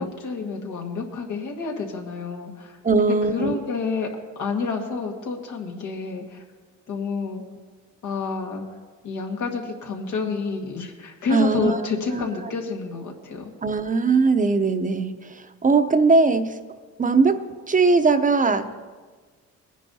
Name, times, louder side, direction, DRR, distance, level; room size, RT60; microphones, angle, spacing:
voice 1, 0.0-4.1 4.4-6.4 6.9-7.4 8.0-8.6 9.0-13.5, left 4 dB, 85° left, 1 dB, 1.7 m, -29 dB
voice 2, 2.8-3.6 11.3-11.8 12.1-12.2 13.6-16.6 17.0-18.8, right 4 dB, 25° right, 9 dB, 0.7 m, -20 dB
19.5 x 10.0 x 2.8 m, 1.4 s
cardioid pair, 90°, 30 cm